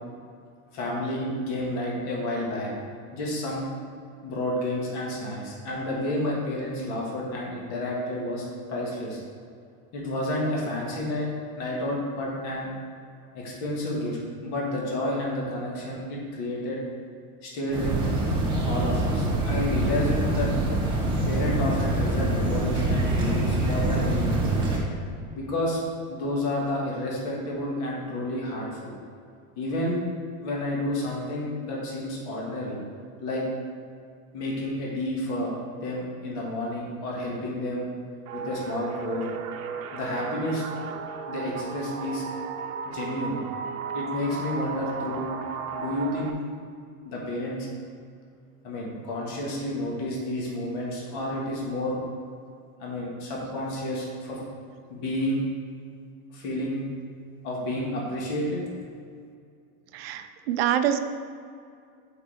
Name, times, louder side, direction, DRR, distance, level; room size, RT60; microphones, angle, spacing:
voice 1, 0.7-2.7 3.1-3.7 4.2-8.4 8.7-9.2 9.9-11.3 11.6-12.7 13.3-16.8 17.4-18.0 18.6-20.5 21.3-24.8 25.3-25.8 26.1-28.9 29.6-30.0 30.4-32.8 33.2-33.4 34.3-35.5 35.8-37.9 38.3-39.3 39.9-40.6 41.3-42.2 42.9-43.4 43.9-45.3 45.7-46.4 47.0-47.7 48.6-52.0 52.8-54.4 54.9-55.4 56.3-56.9 57.4-58.6, left 1 dB, 40° left, -3 dB, 1.7 m, -30 dB
sound 1, 17.7-24.8, right 2 dB, 10° right, 1.3 m, -25 dB
sound 2, 38.3-46.3, right 6 dB, 70° right, 0.8 m, -35 dB
voice 2, 59.9-61.0, right 10 dB, 45° right, 9 dB, 0.4 m, -25 dB
5.4 x 4.8 x 6.3 m, 2.3 s
supercardioid pair, 155°, 44 cm